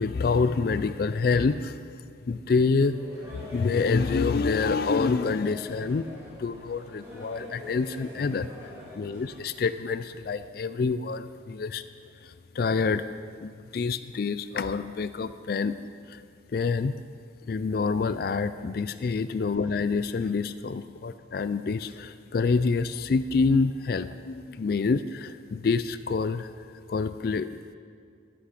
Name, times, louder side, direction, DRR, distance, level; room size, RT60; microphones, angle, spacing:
voice 1, 0.0-1.8 2.3-3.0 3.3-6.1 6.4-11.8 12.2-13.1 13.4-15.8 16.1-16.2 16.5-17.0 17.5-26.5 26.9-27.5, left 4 dB, 50° left, 13 dB, 0.3 m, -27 dB
sound 1, 2.8-9.4, left 1 dB, 15° right, 3.6 m, -45 dB
12.0 x 10.5 x 5.9 m, 2.2 s
head